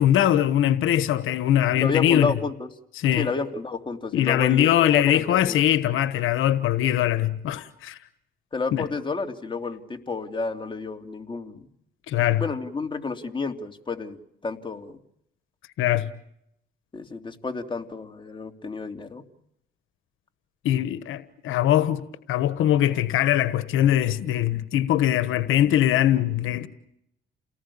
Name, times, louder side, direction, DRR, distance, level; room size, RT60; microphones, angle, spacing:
voice 1, 0.0-2.3 2.9-3.3 4.1-8.0 8.7-8.9 12.1-12.4 15.8-16.1 20.6-22.0 22.3-26.7, left 12 dB, 85° left, 1.3 m, -21 dB
voice 2, 1.7-2.7 3.2-5.5 8.5-11.7 12.4-15.0 16.9-19.2, left 4 dB, 25° left, 3.0 m, -31 dB
30.0 x 19.0 x 8.7 m
cardioid pair, 90°, 20 cm